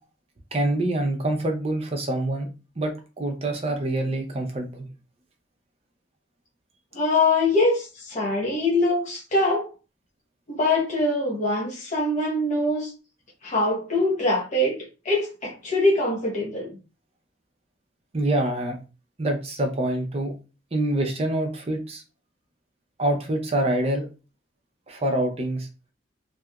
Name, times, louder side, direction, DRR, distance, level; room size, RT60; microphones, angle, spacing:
voice 1, 0.5-2.5 2.8-4.9 18.1-18.8 19.2-20.3 20.7-22.0 23.0-24.1 24.9-25.7, right 1 dB, 30° right, 0.5 m, -26 dB
voice 2, 6.9-9.7 10.5-12.9 13.4-14.8 15.0-16.7, left 2 dB, 40° left, 0.8 m, -23 dB
2.8 x 2.4 x 2.3 m
head